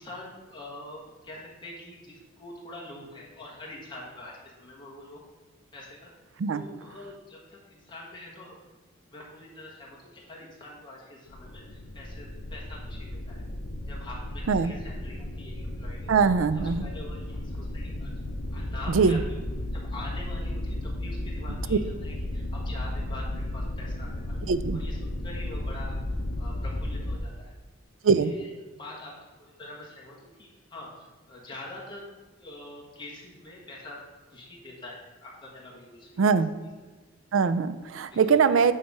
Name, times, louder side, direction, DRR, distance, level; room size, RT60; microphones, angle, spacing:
voice 1, 0.0-5.2 5.7-6.1 6.5-8.6 9.1-13.5 13.9-16.1 16.8-18.1 18.5-19.4 19.7-24.4 24.7-26.0 26.4-27.6 28.0-32.1 32.4-34.0 34.3-36.3 38.1-38.5, left 1 dB, 20° left, -4 dB, 1.6 m, -45 dB
sound 1, 11.3-27.2, left 1 dB, 80° left, 0.8 m, -34 dB
voice 2, 16.1-16.9 18.9-19.2 21.7-21.8 24.5-24.8 28.0-28.3 36.2-36.5 37.3-38.7, right 5 dB, 70° right, 12 dB, 0.4 m, -22 dB
8.7 x 3.3 x 5.4 m, 1.3 s
head